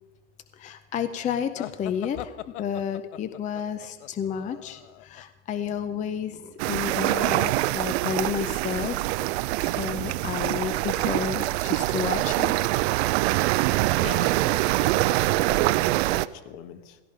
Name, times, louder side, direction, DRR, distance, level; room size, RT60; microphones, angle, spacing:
voice 1, 0.5-9.0 9.6-12.5, left 8 dB, 20° left, 11 dB, 0.5 m, -31 dB
sound 1, 1.6-5.2, left 14 dB, 80° left, 0.7 m, -41 dB
sound 2, 6.6-16.3, right 18 dB, 65° right, 0.5 m, -24 dB
voice 2, 13.6-17.0, left 10 dB, 55° left, 10 dB, 1.2 m, -43 dB
17.0 x 13.0 x 5.0 m, 1.3 s
supercardioid pair, 125°, 35 cm